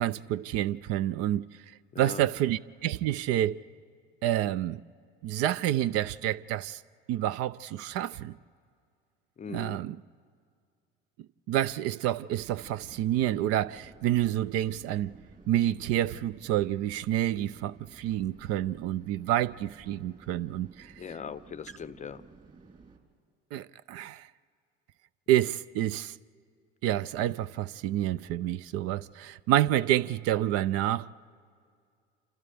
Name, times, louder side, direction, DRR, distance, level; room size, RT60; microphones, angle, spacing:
voice 1, 0.0-1.4 2.0-3.6 4.2-4.8 5.2-6.8 7.1-8.4 9.5-10.0 11.5-15.1 15.5-20.9 23.5-24.3 25.3-26.1 26.8-31.1, right 12 dB, 55° right, 0.5 m, -28 dB
voice 2, 1.9-2.2 9.4-9.8 21.0-22.2, left 7 dB, 25° left, 0.6 m, -40 dB
sound 1, 12.3-23.0, right 4 dB, 30° right, 3.9 m, -54 dB
28.5 x 28.0 x 3.4 m
hypercardioid pair, 75°, 29 cm